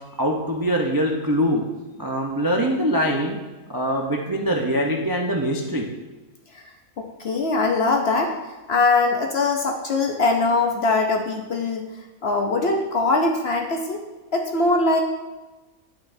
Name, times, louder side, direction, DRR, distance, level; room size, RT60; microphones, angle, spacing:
voice 1, 0.2-1.6 2.0-3.4 3.7-5.9, equal, 30° right, 0 dB, 0.4 m, -23 dB
voice 2, 7.0-8.4 8.7-14.0 14.3-15.0, left 3 dB, 55° left, 3 dB, 0.8 m, -22 dB
10.5 x 7.2 x 2.6 m, 1.2 s
omnidirectional pair, 1.6 m